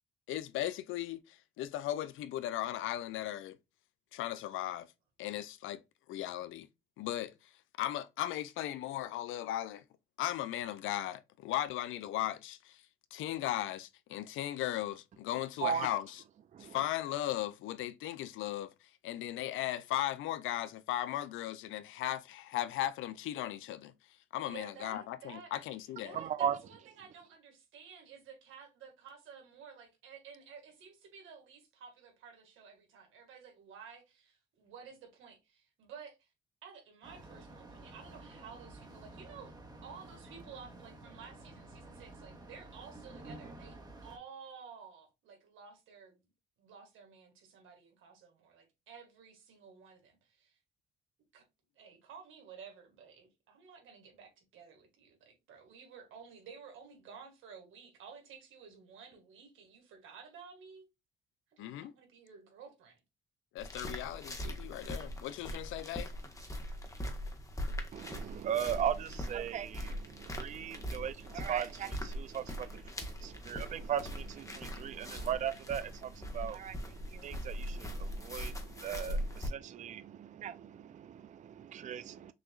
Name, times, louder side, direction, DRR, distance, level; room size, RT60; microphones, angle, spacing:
voice 1, 0.3-3.6 4.1-4.9 5.2-5.8 6.1-6.7 7.0-7.5 7.8-9.8 10.2-12.8 13.1-16.2 16.6-23.9 24.3-26.2 61.6-61.9 63.5-66.1, left 13 dB, 85° left, 0.5 m, -37 dB
voice 2, 24.4-36.3 36.6-39.6 39.8-46.2 46.6-50.6 51.3-51.4 51.8-60.9 61.5-63.0, right 6 dB, 85° right, 2.0 m, -53 dB
voice 3, 26.1-26.6 67.9-82.3, right 9 dB, 40° right, 0.4 m, -38 dB
sound 1, 37.0-44.2, right 2 dB, 20° right, 1.4 m, -51 dB
sound 2, 63.6-79.5, equal, 15° left, 1.2 m, -41 dB
6.2 x 2.8 x 2.4 m
cardioid pair, 90°, 20 cm